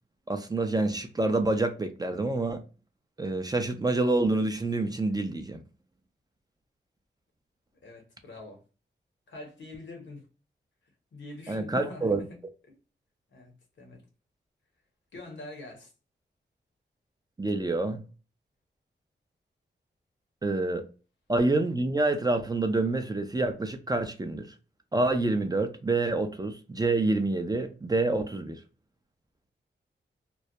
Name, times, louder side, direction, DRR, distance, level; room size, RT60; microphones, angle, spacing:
voice 1, 0.3-2.6 3.2-5.6 11.5-12.2 17.4-18.0 20.4-20.8 21.3-24.5 24.9-28.6, right 2 dB, 20° right, 0.4 m, -27 dB
voice 2, 7.8-8.6 9.3-10.2 11.1-12.4 12.7-12.8 13.3-14.0 15.1-15.9, left 2 dB, 75° left, 0.8 m, -45 dB
2.2 x 2.1 x 2.7 m
cardioid pair, 60°, 19 cm